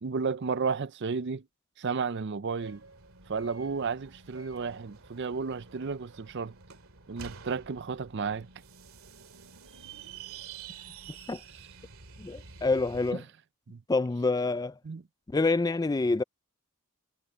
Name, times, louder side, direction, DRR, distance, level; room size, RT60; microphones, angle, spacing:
voice 1, 0.0-1.5 1.8-2.8 3.3-6.5 7.1-8.5 13.1-13.2 13.7-13.8 14.8-15.0, right 5 dB, 55° right, 0.5 m, -32 dB
sound 1, 2.6-13.1, right 5 dB, 70° right, 2.4 m, -48 dB
voice 2, 12.2-13.2 13.9-14.7 15.3-16.2, left 3 dB, 15° left, 0.3 m, -27 dB
head